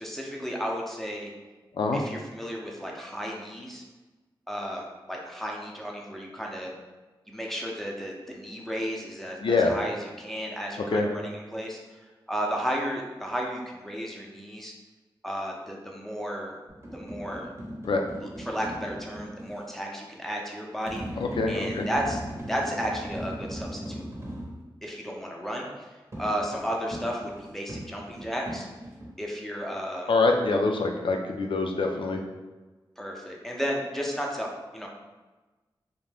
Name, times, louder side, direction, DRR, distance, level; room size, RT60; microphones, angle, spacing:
voice 1, 0.0-1.3 1.9-3.8 4.5-6.7 7.3-12.0 12.3-14.7 15.2-16.5 16.9-17.5 18.2-21.0 21.5-22.2 22.5-24.1 24.8-28.7 29.2-30.1 33.0-34.9, equal, 5° left, -1 dB, 0.6 m, -33 dB
voice 2, 9.4-9.7 10.9-11.1 17.8-18.0 21.2-21.9 30.1-32.2, left 3 dB, 65° left, 3 dB, 0.4 m, -25 dB
sound 1, 16.7-19.6 20.9-24.6 26.1-29.1, right 1 dB, 30° right, 0.8 m, -38 dB
2.6 x 2.1 x 3.3 m, 1.2 s
cardioid pair, 45°, 9 cm